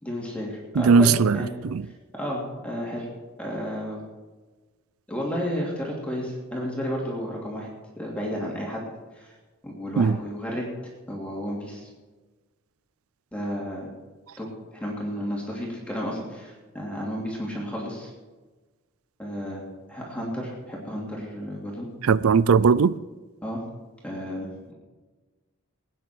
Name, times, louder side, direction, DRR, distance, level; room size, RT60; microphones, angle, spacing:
voice 1, 0.0-1.5 2.2-3.1 3.4-4.0 5.1-7.7 8.0-8.8 9.1-9.3 9.6-10.7 11.1-11.9 13.3-13.9 14.4-18.1 19.2-19.6 19.9-21.9 23.4-23.6 24.0-24.7, equal, 5° left, 3.0 m, -32 dB
voice 2, 0.7-1.9 10.0-10.2 22.0-22.9, right 5 dB, 85° right, 0.5 m, -19 dB
22.0 x 9.4 x 4.6 m
head